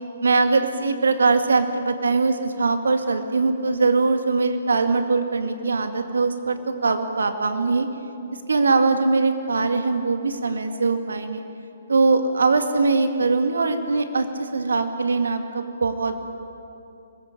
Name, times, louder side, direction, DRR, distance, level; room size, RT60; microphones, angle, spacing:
voice 1, 0.2-7.9 8.5-11.4 11.9-16.2, right 3 dB, 70° right, 7 dB, 2.2 m, -21 dB
24.0 x 20.5 x 8.9 m, 2.8 s
figure-of-eight pair, 125°, 0 cm